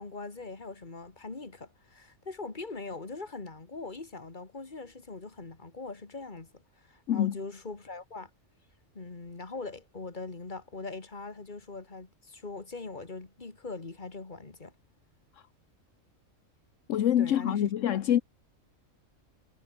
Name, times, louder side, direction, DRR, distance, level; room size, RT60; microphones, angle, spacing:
voice 1, 0.0-6.5 6.8-8.3 8.9-14.7 17.2-18.0, left 3 dB, 35° left, 2.3 m, -41 dB
voice 2, 16.9-18.2, left 11 dB, 75° left, 1.1 m, -25 dB
omnidirectional pair, 1.3 m